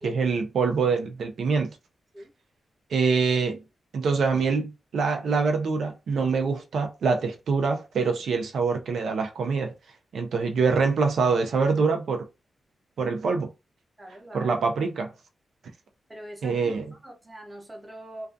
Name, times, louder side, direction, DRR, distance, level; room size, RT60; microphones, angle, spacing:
voice 1, 0.0-1.7 2.9-3.6 3.9-9.7 10.1-12.2 13.0-13.5 14.3-15.1 16.4-16.8, right 4 dB, 75° right, 0.4 m, -25 dB
voice 2, 14.0-14.5 16.1-16.8 17.0-18.3, right 1 dB, 15° right, 0.7 m, -42 dB
2.3 x 2.3 x 2.5 m
wide cardioid pair, 150°, 0 cm